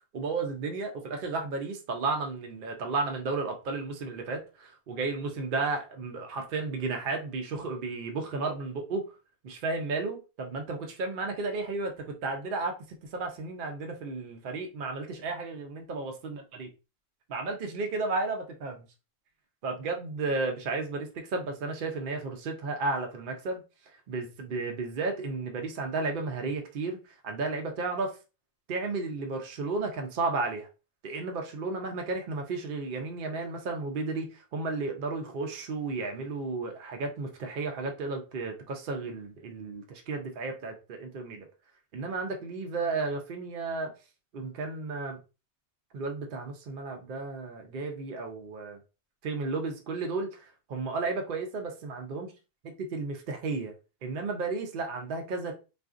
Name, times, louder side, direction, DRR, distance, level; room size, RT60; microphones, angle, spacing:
voice 1, 0.1-9.0 9.4-12.8 13.1-16.7 17.3-18.9 19.6-23.6 24.1-28.1 28.7-30.7 31.0-41.5 41.9-43.9 44.3-45.2 45.9-48.8 49.2-52.3 52.9-53.7 54.0-55.5, right 3 dB, 55° right, 0.7 m, -33 dB
3.7 x 2.5 x 2.4 m
omnidirectional pair, 1.2 m